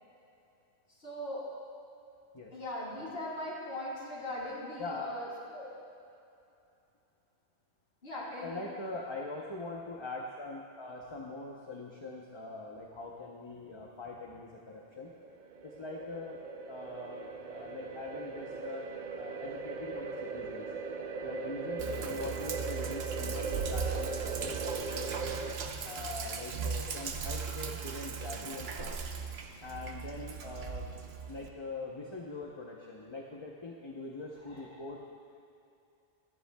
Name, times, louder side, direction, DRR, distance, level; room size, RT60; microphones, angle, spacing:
voice 1, 1.0-1.5 2.5-5.3 5.5-5.7 8.0-8.6 21.8-22.1 34.4-34.7, left 1 dB, 75° left, -7 dB, 3.2 m, -40 dB
voice 2, 4.8-5.1 8.4-15.1 15.6-18.9 19.2-20.7 21.2-25.1 25.8-29.0 29.6-30.9 31.3-35.0, left 3 dB, 30° left, -2 dB, 0.8 m, -43 dB
sound 1, 14.8-25.5, right 4 dB, 55° right, 0.7 m, -39 dB
Sink (filling or washing), 21.8-31.5, right 6 dB, 80° right, 1.0 m, -38 dB
23.5 x 10.0 x 2.3 m, 2.6 s
omnidirectional pair, 1.0 m